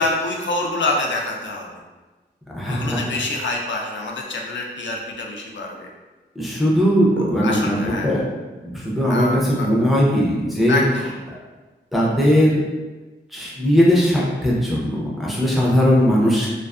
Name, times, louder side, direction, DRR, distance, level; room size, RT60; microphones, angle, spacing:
voice 1, 0.0-1.7 2.7-5.9 7.1-8.1 9.1-9.7 10.7-11.1, left 2 dB, 70° left, 0 dB, 0.4 m, -26 dB
voice 2, 2.5-3.0 6.4-8.2 8.6-10.8 11.9-12.6 13.3-16.5, equal, ahead, -6 dB, 0.6 m, -19 dB
2.5 x 2.4 x 2.3 m, 1.2 s
wide cardioid pair, 125°, 20 cm